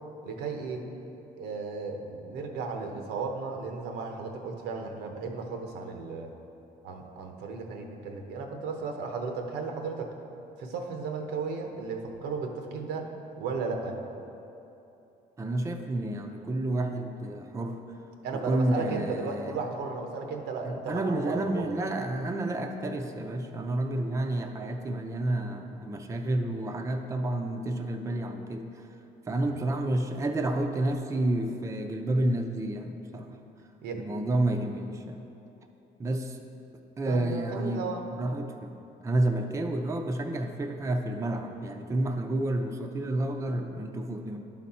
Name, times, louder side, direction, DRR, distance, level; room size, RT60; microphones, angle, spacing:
voice 1, 0.2-0.8 1.4-6.3 6.8-10.1 10.6-13.1 13.4-14.0 18.2-21.7 29.4-29.6 33.8-34.0 37.1-38.0, right 4 dB, 80° right, 3 dB, 0.9 m, -35 dB
voice 2, 15.4-17.8 18.3-19.6 20.7-28.6 29.3-33.4 34.0-35.2 36.0-36.4 37.0-38.7 39.0-44.4, right 1 dB, 15° right, 4 dB, 0.5 m, -30 dB
11.0 x 4.2 x 4.2 m, 2.9 s
cardioid pair, 110°, 17 cm